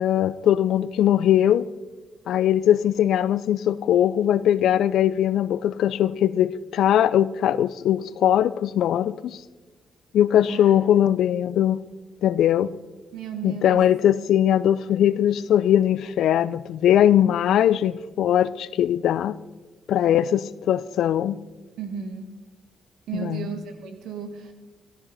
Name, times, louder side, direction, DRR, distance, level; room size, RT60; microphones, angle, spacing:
voice 1, 0.0-1.7 2.3-9.4 10.1-11.8 12.2-12.7 13.4-19.4 19.9-21.4 23.1-23.5, left 10 dB, 80° left, 0.4 m, -20 dB
voice 2, 13.1-13.8 21.8-22.3 23.1-24.5, right 7 dB, 80° right, 1.5 m, -34 dB
14.0 x 13.5 x 4.0 m
supercardioid pair, 55°, 0 cm